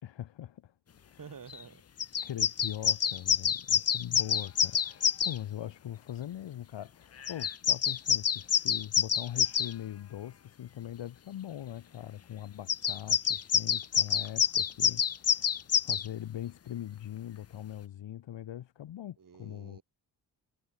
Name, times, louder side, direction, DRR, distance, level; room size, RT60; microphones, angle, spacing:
voice 1, 0.0-0.7 1.0-1.2 2.2-19.8, left 11 dB, 85° left, 1.5 m, -41 dB
voice 2, 1.2-1.8 19.2-19.8, right 6 dB, 45° right, 7.0 m, -49 dB
sound 1, 1.5-1.6 2.0-5.4 7.2-9.7 12.7-16.1, left 8 dB, 35° left, 0.7 m, -27 dB
wide cardioid pair, 140°, 43 cm